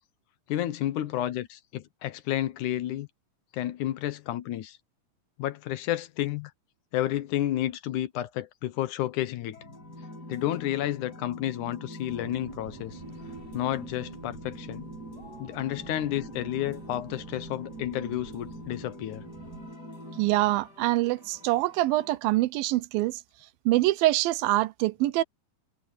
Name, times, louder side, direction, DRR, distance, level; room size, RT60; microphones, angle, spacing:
voice 1, 0.5-3.1 3.5-4.8 5.4-6.5 6.9-9.6 10.3-13.0 13.5-14.9 15.4-19.3, left 13 dB, 70° left, 2.1 m, -31 dB
sound 1, 9.5-22.2, left 1 dB, 25° left, 6.9 m, -45 dB
sound 2, 12.1-19.7, right 7 dB, 60° right, 2.7 m, -47 dB
voice 2, 20.2-23.2 23.7-25.2, right 17 dB, 80° right, 2.5 m, -25 dB
omnidirectional pair, 4.1 m